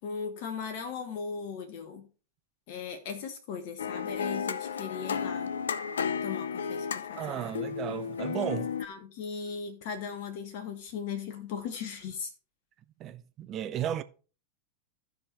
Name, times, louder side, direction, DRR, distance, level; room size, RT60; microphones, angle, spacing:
voice 1, 0.0-2.1 2.7-5.5 6.2-7.5 8.8-12.3, left 6 dB, 45° left, 1.0 m, -38 dB
sound 1, 3.8-8.9, left 7 dB, 65° left, 0.5 m, -33 dB
voice 2, 7.2-8.8 13.0-14.0, right 11 dB, 30° right, 0.6 m, -34 dB
15.0 x 5.1 x 3.2 m
figure-of-eight pair, 90°, 0 cm